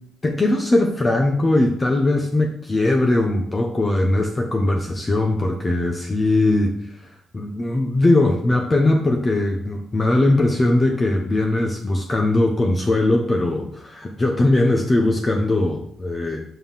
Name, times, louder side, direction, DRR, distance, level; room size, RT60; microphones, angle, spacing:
voice 1, 0.2-6.7 7.3-16.4, left 2 dB, 25° left, 2 dB, 0.9 m, -20 dB
5.6 x 5.4 x 5.7 m, 0.68 s
cardioid pair, 100°, 0 cm